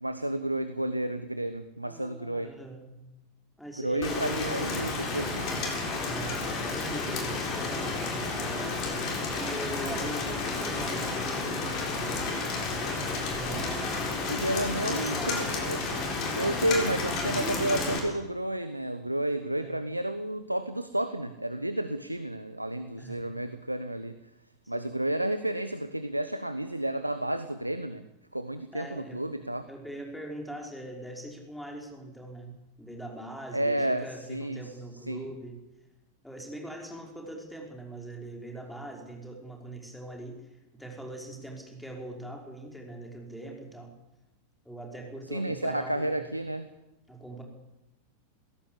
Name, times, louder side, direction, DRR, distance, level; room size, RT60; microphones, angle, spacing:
voice 1, 0.0-2.5 3.8-5.5 14.3-16.0 16.3-24.2 24.7-28.0 28.3-29.7 33.5-34.6 35.1-35.2 45.3-46.7, right 1 dB, 85° right, 11 dB, 1.1 m, -31 dB
voice 2, 1.8-3.0 3.6-4.9 6.0-9.1 9.4-12.6 13.3-15.4 17.0-18.1 19.6-19.8 23.0-23.4 24.6-24.9 28.7-29.3 29.7-35.6 36.2-43.9 44.6-46.3 47.1-47.4, right 1 dB, ahead, 1 dB, 5.4 m, -41 dB
Rain, 4.0-18.0, left 3 dB, 35° left, 7.4 m, -31 dB
21.5 x 17.0 x 8.6 m, 0.92 s
figure-of-eight pair, 90°, 0 cm